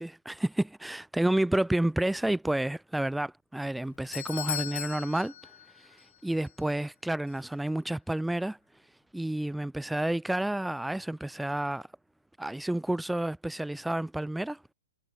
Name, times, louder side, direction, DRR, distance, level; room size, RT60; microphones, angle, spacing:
voice 1, 0.0-5.3 5.8-8.6 9.1-11.9 12.4-14.6, right 1 dB, ahead, 6.8 m, -30 dB
Doorbell, 3.6-6.2 6.4-6.5 7.3-7.4, left 10 dB, 65° left, 7.4 m, -38 dB
hypercardioid pair, 145°, 0 cm